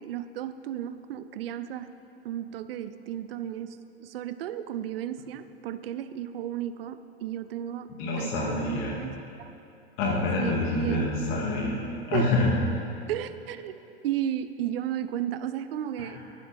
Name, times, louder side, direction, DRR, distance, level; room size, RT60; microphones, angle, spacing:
voice 1, 0.0-1.9 2.2-9.5 10.4-11.1 12.1-12.4 13.1-13.7 14.0-16.2, right 11 dB, 70° right, 12 dB, 0.6 m, -34 dB
voice 2, 8.0-9.0 10.0-11.8 12.1-12.5 16.0-16.1, left 2 dB, 55° left, -2 dB, 2.8 m, -27 dB
12.0 x 9.2 x 5.3 m, 2.8 s
hypercardioid pair, 85°, 30 cm